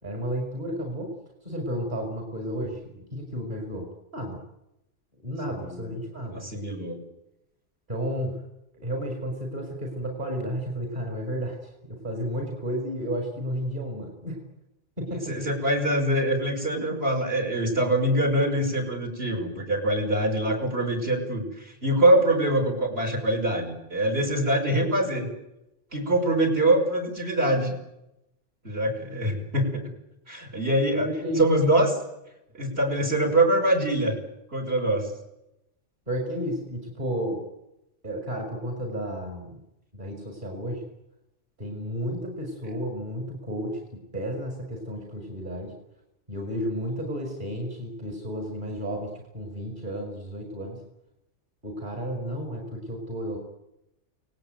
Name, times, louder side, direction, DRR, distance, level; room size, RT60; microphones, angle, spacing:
voice 1, 0.0-1.1 1.4-3.9 4.1-4.4 5.2-6.4 7.9-8.4 8.7-14.4 15.0-15.5 31.0-31.4 36.1-37.4 38.0-39.6 39.9-40.8 41.6-45.7 46.3-50.8 51.6-53.4, equal, 40° right, 1 dB, 5.6 m, -32 dB
voice 2, 5.5-5.9 6.2-7.0 15.3-25.3 25.9-27.7 28.6-29.8 30.3-31.1 31.4-32.0 32.5-34.2 34.5-35.1, right 1 dB, 55° right, 3 dB, 6.5 m, -24 dB
29.0 x 19.0 x 9.2 m, 0.89 s
omnidirectional pair, 1.3 m